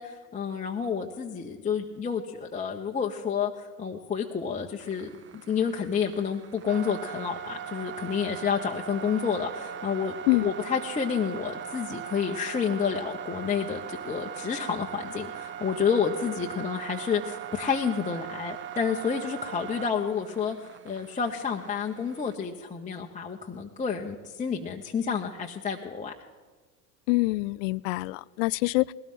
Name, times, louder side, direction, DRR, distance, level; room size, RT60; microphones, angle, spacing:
voice 1, 0.0-5.1 5.5-10.2 10.4-26.1, left 6 dB, 15° left, -1 dB, 1.1 m, -30 dB
sound 1, 4.8-22.4, right 9 dB, 25° right, 0.7 m, -40 dB
voice 2, 27.1-28.9, left 23 dB, 50° left, 20 dB, 0.6 m, -25 dB
20.5 x 18.0 x 3.8 m, 1.4 s
hypercardioid pair, 85°, 50 cm